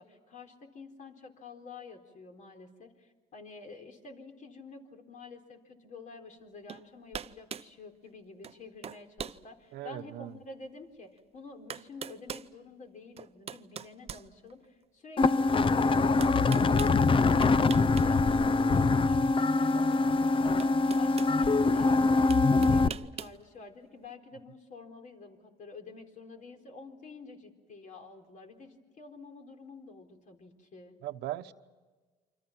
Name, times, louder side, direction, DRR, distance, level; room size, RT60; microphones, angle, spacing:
voice 1, 0.0-30.9, left 3 dB, 50° left, 4.0 m, -49 dB
sound 1, 6.7-6.8 7.1-7.7 8.4-8.6 8.8-9.4 10.0-10.1 11.2-11.3 11.7-12.5 13.2-14.8 16.2-17.0 17.4-18.1 18.4-18.5 19.9-20.0 20.6-21.3 22.3-23.4, right 8 dB, 35° right, 0.8 m, -41 dB
voice 2, 9.7-10.4 19.5-20.2 31.0-31.5, right 14 dB, 80° right, 1.1 m, -40 dB
sound 2, 15.2-22.9, left 3 dB, 30° left, 0.7 m, -24 dB
28.5 x 26.5 x 6.0 m
cardioid pair, 110°, 17 cm